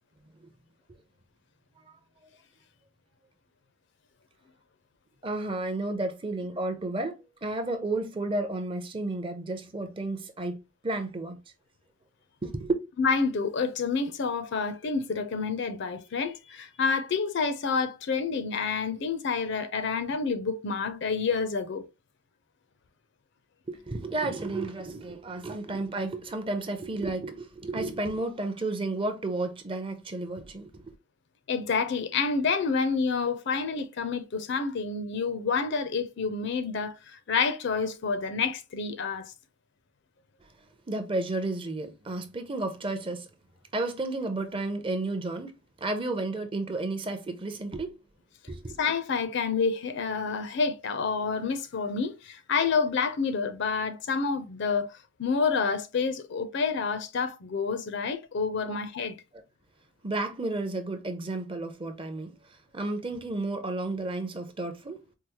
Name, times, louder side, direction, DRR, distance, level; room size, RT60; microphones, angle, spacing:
voice 1, 5.2-11.4 12.4-12.7 23.7-30.8 40.9-43.3 43.7-45.5 45.8-47.9 48.5-48.8 58.7-58.8 60.0-65.0, right 2 dB, 25° right, 0.5 m, -32 dB
voice 2, 13.0-21.8 31.5-39.3 48.8-59.2, left 5 dB, 55° left, 0.4 m, -28 dB
4.6 x 2.0 x 2.8 m
head